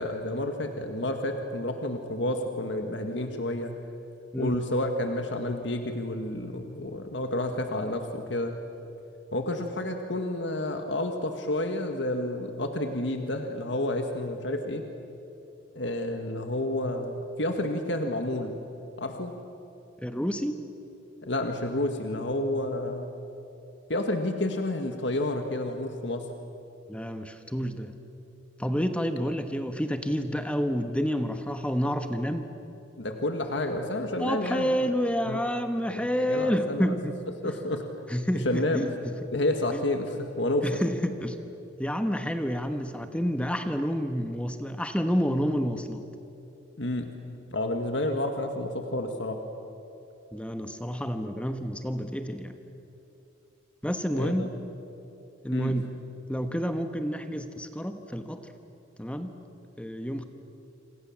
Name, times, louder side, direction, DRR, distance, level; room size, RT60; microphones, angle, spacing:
voice 1, 0.0-3.7 4.4-8.6 9.3-14.9 15.7-18.6 19.0-19.4 21.2-23.2 23.9-26.3 33.0-34.9 35.3-35.5 35.9-37.0 37.4-37.8 38.4-38.9 39.3-40.6 46.8-47.1 47.5-49.4 54.1-54.5 55.5-55.8, left 1 dB, 65° left, 5 dB, 1.9 m, -30 dB
voice 2, 20.0-20.6 26.9-27.9 28.6-32.5 34.2-37.2 37.4-37.5 38.1-39.3 39.7-39.8 40.6-41.4 41.8-46.1 50.3-52.6 53.8-54.5 55.4-55.9 56.3-58.5 59.0-59.3 59.8-60.2, equal, 5° left, 7 dB, 1.2 m, -29 dB
27.5 x 26.5 x 7.4 m, 2.9 s
head